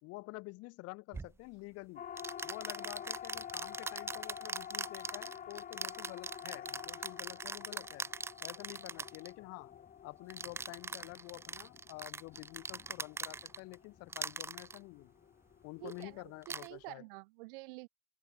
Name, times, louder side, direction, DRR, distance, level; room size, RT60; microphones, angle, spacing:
voice 1, 0.0-2.1 2.4-8.1 8.4-9.7 10.0-15.1 15.6-17.1, left 23 dB, 55° left, 1.3 m, -49 dB
sound 1, 1.1-1.3 2.2-9.3 10.3-13.7 14.1-14.8 15.8-16.0 16.4-16.7, right 4 dB, 10° right, 0.3 m, -42 dB
Siren, 2.0-16.3, left 9 dB, 30° left, 1.1 m, -49 dB
voice 2, 15.8-16.1 16.5-17.9, right 25 dB, 65° right, 0.7 m, -48 dB
hypercardioid pair, 95°, 29 cm